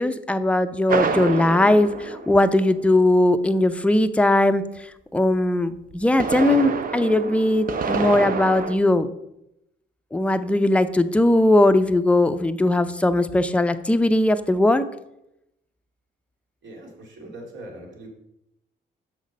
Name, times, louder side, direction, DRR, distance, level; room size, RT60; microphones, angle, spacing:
voice 1, 0.0-4.7 5.1-9.1 10.1-14.9, left 1 dB, 5° left, 9 dB, 0.5 m, -19 dB
sound 1, 0.9-3.0 5.9-8.7, right 5 dB, 45° right, 0.8 m, -27 dB
voice 2, 16.6-18.1, right 1 dB, 70° right, 0 dB, 2.5 m, -41 dB
6.3 x 6.1 x 5.4 m, 0.84 s
cardioid pair, 90°, 20 cm